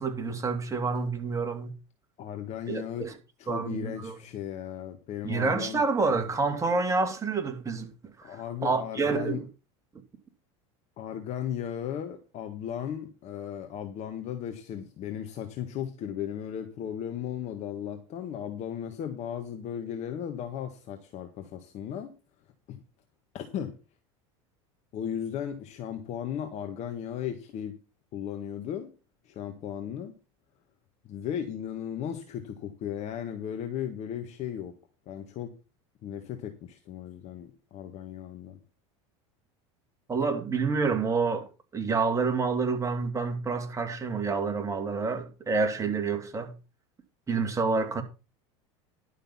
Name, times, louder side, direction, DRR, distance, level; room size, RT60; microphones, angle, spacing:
voice 1, 0.0-1.7 2.7-3.1 3.5-4.1 5.2-7.9 8.2-9.5 40.1-46.5 47.3-48.0, right 4 dB, 20° right, 2.7 m, -28 dB
voice 2, 2.2-3.1 3.4-5.8 8.2-9.4 11.0-22.1 22.7-22.8 23.3-23.8 24.9-27.8 28.1-28.9 29.3-30.1 31.1-34.7 35.1-35.5 36.0-38.6, left 9 dB, 45° left, 1.8 m, -36 dB
11.5 x 6.5 x 5.9 m
supercardioid pair, 110°, 15 cm